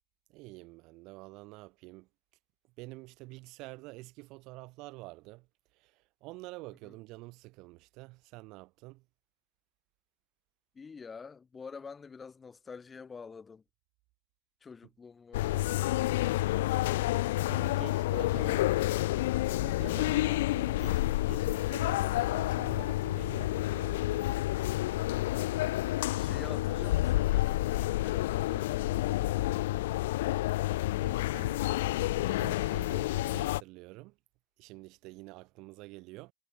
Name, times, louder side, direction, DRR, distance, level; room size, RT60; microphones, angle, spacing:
voice 1, 0.3-2.1 2.8-5.5 5.7-9.0 17.5-24.3 25.0-25.1 30.5-30.7 31.0-31.7 32.2-34.1 34.6-36.3, right 23 dB, 40° right, 1.7 m, -48 dB
voice 2, 10.7-13.6 14.6-16.9 18.4-18.7 26.0-29.9, left 5 dB, 15° left, 1.6 m, -48 dB
sound 1, 15.3-33.6, left 16 dB, 55° left, 0.5 m, -29 dB
figure-of-eight pair, 90°, 0 cm